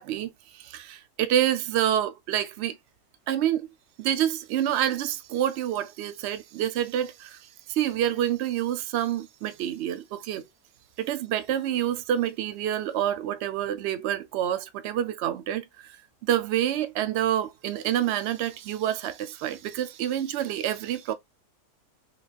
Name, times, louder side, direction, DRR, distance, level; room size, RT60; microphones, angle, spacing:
voice 1, 0.0-2.8 3.3-3.7 4.0-10.4 11.0-16.0 16.2-21.1, right 11 dB, 65° right, 0.7 m, -28 dB
3.9 x 3.3 x 2.3 m
omnidirectional pair, 1.6 m